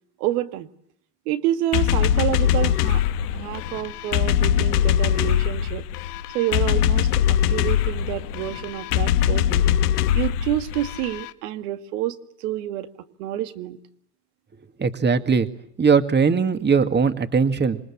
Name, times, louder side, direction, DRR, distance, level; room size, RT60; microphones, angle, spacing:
voice 1, 0.2-0.7 1.3-3.0 3.3-5.9 6.3-9.7 10.1-12.2 12.4-12.9 13.2-13.8, right 13 dB, 75° right, 8 dB, 2.1 m, -28 dB
sound 1, 1.7-11.3, left 10 dB, 75° left, 1.6 m, -22 dB
voice 2, 14.8-15.5 15.8-17.8, right 5 dB, 20° right, 9 dB, 2.1 m, -19 dB
27.5 x 21.5 x 8.6 m, 0.69 s
hypercardioid pair, 90°, 46 cm